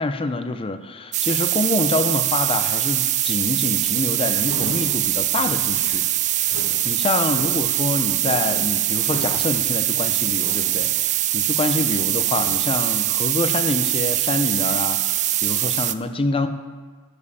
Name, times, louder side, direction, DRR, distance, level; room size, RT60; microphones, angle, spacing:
voice 1, 0.0-6.1 6.4-16.5, left 2 dB, 25° left, 9 dB, 0.5 m, -26 dB
sound 1, 1.1-15.9, right 13 dB, 35° right, 0.3 m, -22 dB
sound 2, 3.9-11.8 12.1-12.9, left 1 dB, 90° left, 1.3 m, -39 dB
11.0 x 5.4 x 7.0 m, 1.5 s
head